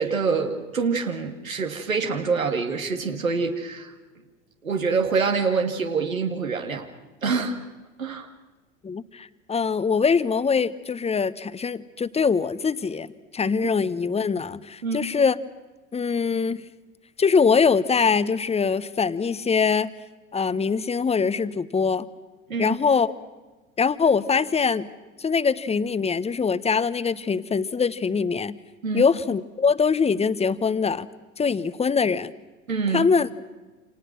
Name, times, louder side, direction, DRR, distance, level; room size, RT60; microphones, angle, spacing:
voice 1, 0.0-3.9 4.6-6.9 7.2-7.6 8.0-8.3 14.8-15.1 22.5-22.8 28.8-29.1 32.7-33.1, right 5 dB, 85° right, 3 dB, 2.4 m, -25 dB
voice 2, 8.8-15.4 15.9-16.6 17.2-19.9 20.3-22.1 22.6-23.1 23.8-24.9 25.2-28.6 28.9-31.1 31.4-32.3 32.9-33.3, left 5 dB, 15° left, 15 dB, 1.2 m, -23 dB
29.0 x 27.5 x 6.2 m, 1.2 s
figure-of-eight pair, 80°, 40 cm